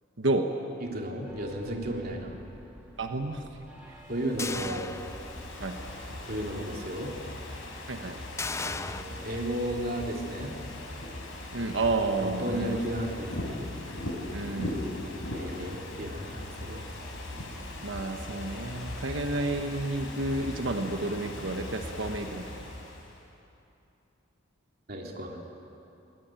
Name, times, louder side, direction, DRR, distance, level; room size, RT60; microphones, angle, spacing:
voice 1, 0.2-0.5 3.0-3.5 5.6-5.8 7.9-8.2 11.5-12.8 14.3-14.8 17.8-22.7, right 2 dB, 65° right, 5 dB, 1.3 m, -30 dB
voice 2, 0.8-2.4 4.1-4.9 6.3-7.1 8.6-10.5 12.2-13.6 15.3-16.9 24.9-25.4, right 1 dB, 50° right, 0 dB, 3.3 m, -34 dB
sound 1, 1.3-6.7, equal, 5° right, 3.1 m, -51 dB
Ocean / Fireworks, 3.9-23.2, left 1 dB, 90° left, 4.7 m, -39 dB
sound 2, 4.4-5.7 6.1-6.2 8.4-9.0, left 4 dB, 15° left, 0.5 m, -36 dB
22.0 x 19.5 x 9.1 m, 2.8 s
head